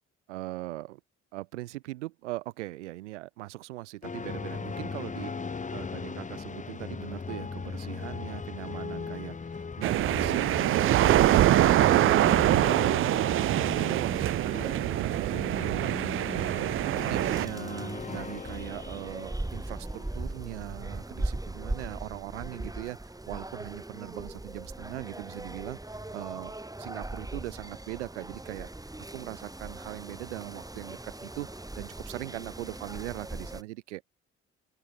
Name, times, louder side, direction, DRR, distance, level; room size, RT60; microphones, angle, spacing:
voice 1, 0.3-1.0 1.3-11.5 11.8-16.3 16.9-26.5 26.8-28.7 29.1-31.5 31.8-34.0, right 18 dB, 80° right, 0.6 m, -40 dB
sound 1, 4.0-20.9, left 5 dB, 20° left, 1.0 m, -38 dB
sound 2, 9.8-17.5, right 14 dB, 40° right, 0.4 m, -24 dB
sound 3, 16.9-33.6, right 2 dB, 10° right, 2.4 m, -39 dB
open air
figure-of-eight pair, 40°, 35 cm